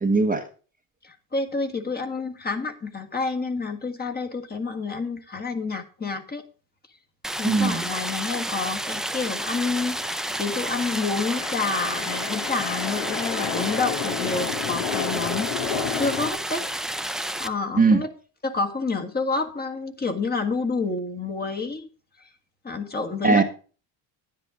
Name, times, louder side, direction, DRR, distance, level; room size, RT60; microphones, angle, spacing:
voice 1, 0.0-0.4 7.4-7.8 17.8-18.0 23.2-23.4, right 4 dB, 20° right, 4 dB, 1.2 m, -19 dB
voice 2, 1.0-6.4 7.4-16.7 17.4-18.1 18.4-21.9 22.6-23.4, left 4 dB, 20° left, 4 dB, 1.6 m, -29 dB
Stream, 7.2-17.5, right 1 dB, ahead, 0.5 m, -30 dB
sound 1, 9.9-16.3, left 7 dB, 75° left, 2.2 m, -31 dB
10.0 x 9.9 x 3.7 m, 0.37 s
supercardioid pair, 100°, 47 cm